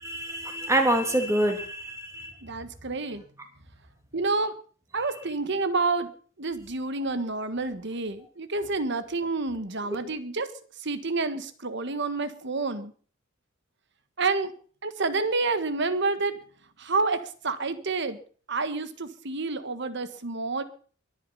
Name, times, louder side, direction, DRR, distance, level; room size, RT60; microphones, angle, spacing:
voice 1, 0.0-2.3, right 1 dB, 15° right, 4 dB, 2.9 m, -26 dB
voice 2, 2.4-3.2 4.1-4.5 4.9-6.1 6.4-10.5 10.8-12.9 14.2-14.5 14.8-16.4 16.8-18.2 18.5-20.6, right 3 dB, 60° right, 11 dB, 1.5 m, -29 dB
23.0 x 8.7 x 5.6 m, 0.44 s
head